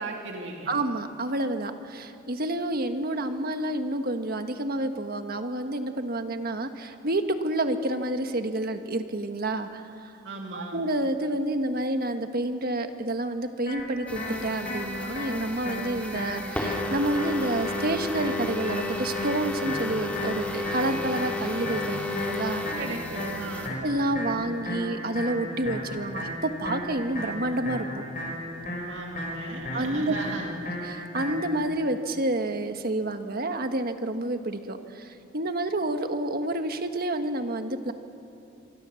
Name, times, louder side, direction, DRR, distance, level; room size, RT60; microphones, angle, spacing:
voice 1, 0.0-0.7 10.2-10.8 22.8-23.7 28.9-30.5, right 2 dB, 65° right, 1 dB, 2.5 m, -37 dB
voice 2, 0.7-10.1 10.5-22.6 23.8-28.0 29.7-30.1 30.8-37.9, right 1 dB, 50° right, 7 dB, 1.5 m, -29 dB
sound 1, 13.7-31.6, left 1 dB, 45° left, 7.3 m, -35 dB
sound 2, 14.1-23.7, left 2 dB, 5° left, 2.6 m, -33 dB
27.0 x 24.0 x 7.1 m, 2.6 s
head